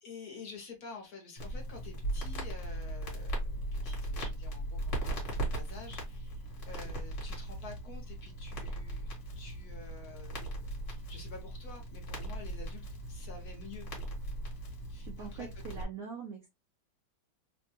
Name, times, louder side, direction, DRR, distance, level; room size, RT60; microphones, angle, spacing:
voice 1, 0.0-3.4 3.7-9.1 9.4-10.6 10.9-13.9 14.9-15.5, left 4 dB, 60° left, 2 dB, 1.2 m, -49 dB
Crackle, 1.4-15.8, right 1 dB, 45° left, 1.3 m, -38 dB
voice 2, 15.0-16.4, right 6 dB, 75° right, 2 dB, 0.8 m, -43 dB
3.3 x 2.2 x 2.8 m, 0.21 s
omnidirectional pair, 2.1 m